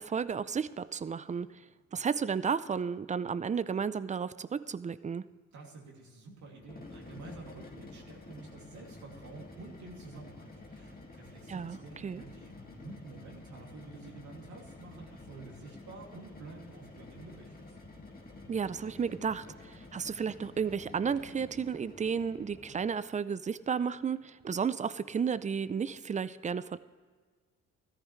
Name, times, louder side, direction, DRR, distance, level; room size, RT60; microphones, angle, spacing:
voice 1, 0.0-1.6 1.9-5.2 11.5-12.2 18.5-26.8, right 6 dB, 25° right, 16 dB, 0.5 m, -33 dB
voice 2, 5.5-17.8, right 3 dB, 70° right, -2 dB, 2.6 m, -50 dB
sound 1, 6.6-23.0, left 2 dB, 30° left, 2.0 m, -50 dB
14.0 x 13.5 x 3.2 m, 1.5 s
cardioid pair, 90°, 30 cm